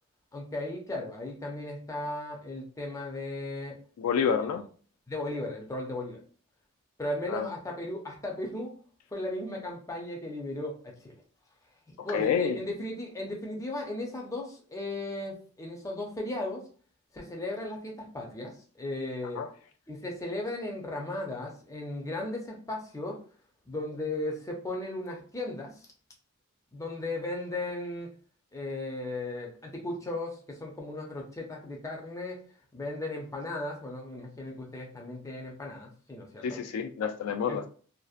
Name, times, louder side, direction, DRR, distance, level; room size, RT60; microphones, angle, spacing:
voice 1, 0.3-3.8 4.4-4.6 5.1-6.2 7.0-8.8 9.1-11.2 12.0-16.6 17.1-19.4 19.9-23.2 23.7-25.7 26.7-28.1 28.5-32.4 32.7-36.6 37.5-37.6, left 2 dB, 15° left, 0 dB, 0.5 m, -36 dB
voice 2, 4.0-4.6 7.3-7.5 12.0-12.6 19.4-19.5 36.4-37.7, left 7 dB, 75° left, 6 dB, 0.3 m, -28 dB
2.6 x 2.0 x 2.4 m, 0.41 s
head